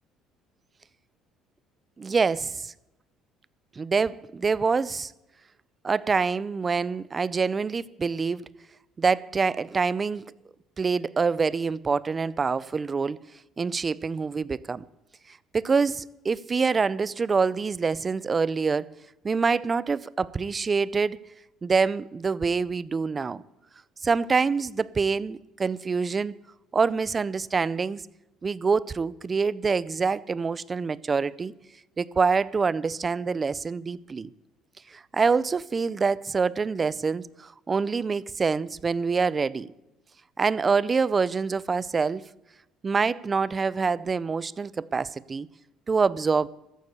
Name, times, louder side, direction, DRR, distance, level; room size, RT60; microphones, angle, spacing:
voice 1, 2.0-2.7 3.8-5.1 5.8-8.5 9.0-10.2 10.8-13.2 13.6-14.8 15.5-18.9 19.2-21.2 21.6-23.4 24.0-26.4 26.7-28.0 28.4-31.5 32.0-34.3 34.9-39.7 40.4-42.3 42.8-45.5 45.9-46.5, right 5 dB, 25° right, 0.5 m, -26 dB
14.0 x 9.6 x 8.4 m
cardioid pair, 100°, 0 cm